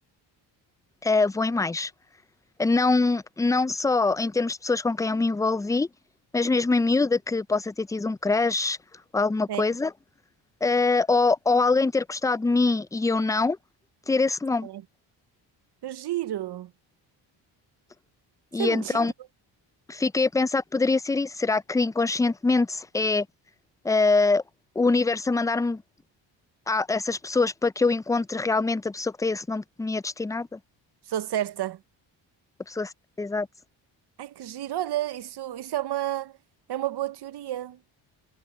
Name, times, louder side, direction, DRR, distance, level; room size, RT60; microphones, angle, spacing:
voice 1, 1.0-1.9 2.6-5.9 6.3-8.8 9.1-9.9 10.6-13.6 14.1-14.7 18.5-19.1 19.9-23.3 23.8-24.4 24.8-25.8 26.7-30.6 32.7-32.9 33.2-33.5, left 3 dB, 10° left, 0.4 m, -24 dB
voice 2, 15.8-16.7 18.6-19.1 31.1-31.8 34.2-36.4 36.7-37.8, right 12 dB, 55° right, 0.9 m, -31 dB
cardioid pair, 75°, 47 cm